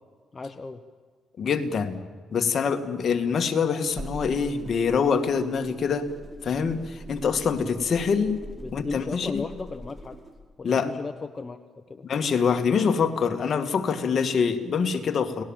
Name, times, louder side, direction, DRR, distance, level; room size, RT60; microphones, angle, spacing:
voice 1, 0.3-0.8 8.6-10.2 10.6-12.1, left 4 dB, 30° left, 7 dB, 1.2 m, -36 dB
voice 2, 1.4-2.0 2.3-6.1 6.4-8.4 8.7-9.4 10.6-10.9 12.0-15.4, left 6 dB, 50° left, 6 dB, 2.2 m, -25 dB
sound 1, 3.9-10.4, right 1 dB, 20° right, 4.6 m, -42 dB
30.0 x 19.5 x 7.5 m, 1.5 s
cardioid pair, 90°, 0 cm